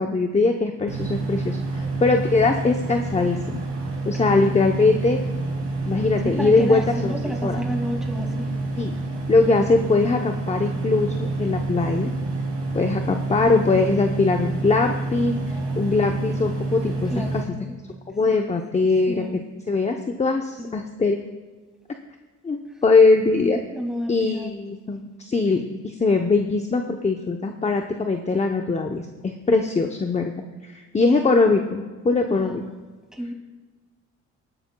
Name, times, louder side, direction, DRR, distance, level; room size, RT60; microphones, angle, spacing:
voice 1, 0.0-3.6 4.0-5.2 5.9-7.1 7.4-7.6 8.8-8.9 9.3-12.1 12.7-15.4 15.8-17.2 18.1-19.2 19.7-21.2 22.4-23.6 24.1-30.3 30.6-32.6, left 3 dB, 20° left, 4 dB, 0.8 m, -21 dB
sound 1, 0.9-17.4, right 3 dB, 45° right, 3.2 m, -28 dB
voice 2, 6.2-8.6 9.3-9.6 15.5-15.9 17.0-17.8 18.7-19.4 20.6-20.8 22.7-22.8 23.7-24.5 32.1-32.6 33.1-33.3, equal, ahead, 1 dB, 2.3 m, -32 dB
19.0 x 12.0 x 2.3 m, 1.4 s
cardioid pair, 90°, 30 cm